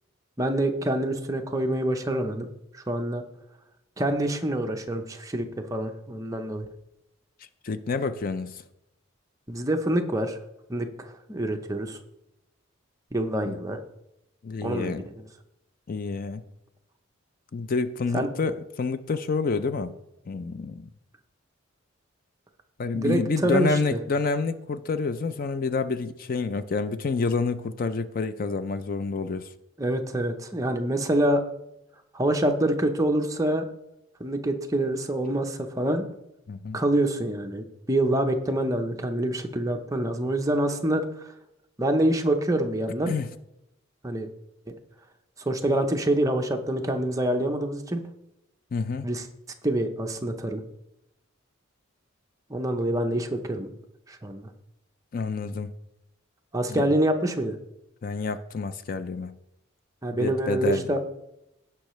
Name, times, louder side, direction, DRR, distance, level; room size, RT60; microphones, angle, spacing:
voice 1, 0.4-2.5 2.7-3.2 4.0-6.7 9.5-10.4 10.7-12.0 13.1-13.8 14.6-14.9 18.1-18.3 22.9-23.7 29.8-31.4 32.1-33.6 34.2-36.0 36.7-41.3 41.8-43.1 44.0-44.3 45.5-48.0 49.0-49.2 49.6-50.6 52.5-53.7 54.1-54.5 56.5-57.6 60.0-61.0, right 1 dB, 15° right, 4 dB, 0.7 m, -26 dB
voice 2, 7.6-8.6 13.5-13.6 14.4-15.1 15.9-16.4 17.5-20.0 20.3-20.9 22.8-29.5 36.5-36.8 43.1-43.3 48.7-49.1 55.1-55.7 56.7-56.8 58.0-59.4 60.1-60.8, left 4 dB, 40° left, 12 dB, 0.4 m, -28 dB
16.5 x 5.6 x 3.1 m, 0.87 s
head